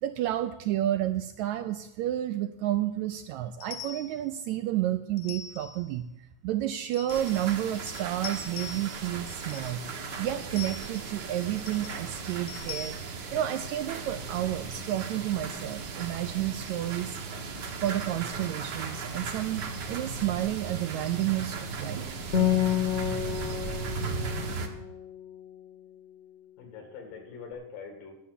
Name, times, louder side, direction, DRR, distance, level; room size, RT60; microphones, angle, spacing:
voice 1, 0.0-6.0 6.4-9.8 10.2-13.0 13.3-17.2 17.8-22.2, right 13 dB, 80° right, 9 dB, 1.7 m, -31 dB
sound 1, 3.6-4.2 5.2-5.8 6.9-7.6 7.9-9.0 9.3-9.8 10.6-11.1 11.7-12.0 12.5-12.9, left 7 dB, 65° left, 1.9 m, -42 dB
sound 2, 7.1-24.7, right 4 dB, 60° right, 1.1 m, -37 dB
Acoustic guitar, 22.3-26.1, left 10 dB, 50° left, 1.1 m, -30 dB
voice 2, 26.6-28.1, left 5 dB, 85° left, 4 dB, 3.8 m, -44 dB
11.5 x 7.0 x 8.3 m, 0.87 s
omnidirectional pair, 3.7 m